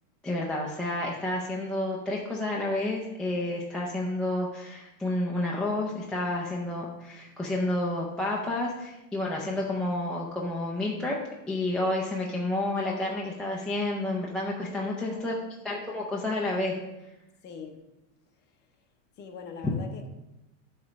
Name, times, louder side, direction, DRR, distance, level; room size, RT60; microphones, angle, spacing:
voice 1, 0.2-11.2 11.5-15.3 15.6-16.8 19.6-19.7, left 1 dB, ahead, -4 dB, 0.4 m, -30 dB
voice 2, 14.6-15.4 17.4-17.8 19.2-20.1, left 6 dB, 25° left, 3 dB, 0.9 m, -43 dB
8.7 x 3.3 x 5.9 m, 0.95 s
supercardioid pair, 150°, 40 cm